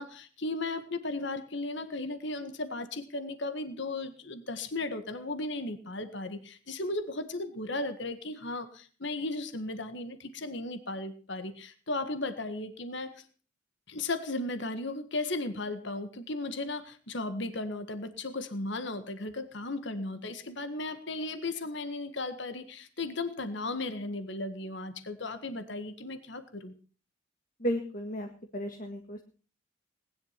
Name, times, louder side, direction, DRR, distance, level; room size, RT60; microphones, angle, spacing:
voice 1, 0.0-13.2 13.9-26.7, left 2 dB, 60° left, 10 dB, 1.7 m, -36 dB
voice 2, 27.6-29.2, equal, 40° left, 4 dB, 1.9 m, -34 dB
20.0 x 11.0 x 5.8 m, 0.38 s
head